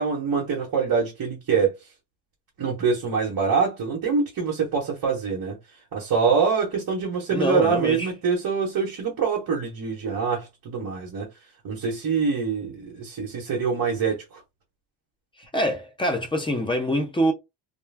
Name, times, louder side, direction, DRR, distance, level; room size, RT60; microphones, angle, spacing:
voice 1, 0.0-1.7 2.6-5.6 5.9-11.3 11.6-14.4, right 5 dB, 45° right, 0.9 m, -25 dB
voice 2, 7.3-8.1 15.5-17.3, equal, 15° left, 0.3 m, -25 dB
2.3 x 2.2 x 3.2 m
cardioid pair, 160°, 47 cm